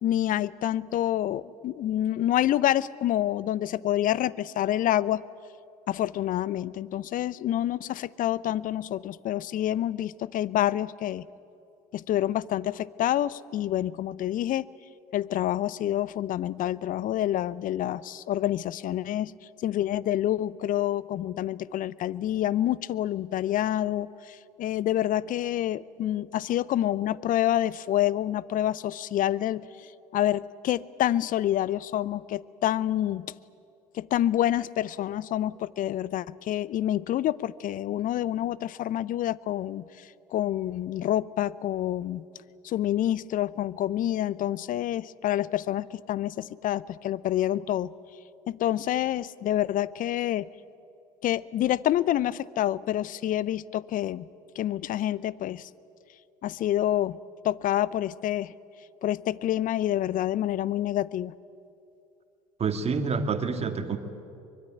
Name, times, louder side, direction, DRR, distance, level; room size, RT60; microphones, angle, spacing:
voice 1, 0.0-5.2 5.9-11.3 11.9-14.7 15.1-19.3 19.6-33.3 33.9-42.3 42.6-47.9 48.5-50.5 51.2-54.3 54.6-55.7 56.4-57.2 57.4-58.5 59.0-61.3, left 12 dB, 45° left, 21 dB, 0.7 m, -27 dB
voice 2, 62.6-64.0, right 5 dB, 35° right, 8 dB, 2.2 m, -27 dB
24.0 x 22.0 x 9.3 m, 2.7 s
hypercardioid pair, 70°, 19 cm